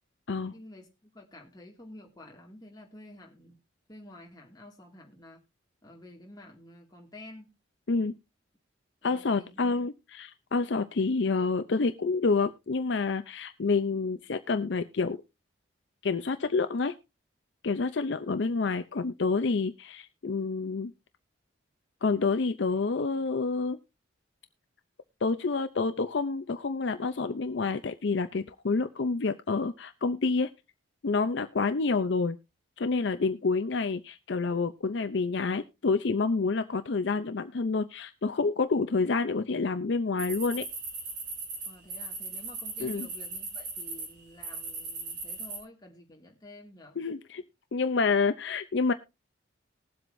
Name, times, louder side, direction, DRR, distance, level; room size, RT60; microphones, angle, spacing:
voice 1, 0.5-3.6 3.9-5.4 5.8-7.5 9.0-9.7 41.6-47.0, left 1 dB, 20° left, 2.2 m, -50 dB
voice 2, 7.9-8.2 9.0-15.2 16.0-16.9 17.6-20.9 22.0-23.8 25.2-30.5 31.0-32.4 32.8-40.6 42.8-43.1 47.0-47.4 47.7-48.9, left 4 dB, 60° left, 0.5 m, -28 dB
sound 1, 40.2-44.1 44.4-45.6, right 3 dB, 65° right, 4.2 m, -38 dB
20.0 x 7.8 x 2.6 m
head